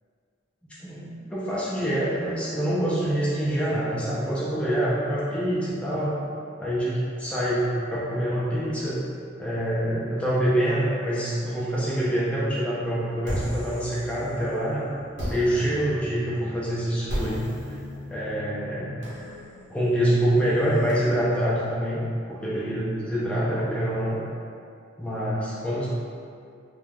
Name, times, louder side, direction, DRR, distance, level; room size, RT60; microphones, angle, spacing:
voice 1, 0.8-6.2 6.6-9.0 9.4-14.9 15.3-17.8 18.1-18.9 19.7-22.0 22.3-24.2 25.0-25.9, right 1 dB, 5° left, -8 dB, 0.4 m, -26 dB
sound 1, 13.2-14.6 15.2-20.9, equal, 75° right, 0.8 m, -35 dB
2.3 x 2.2 x 3.3 m, 2.4 s
head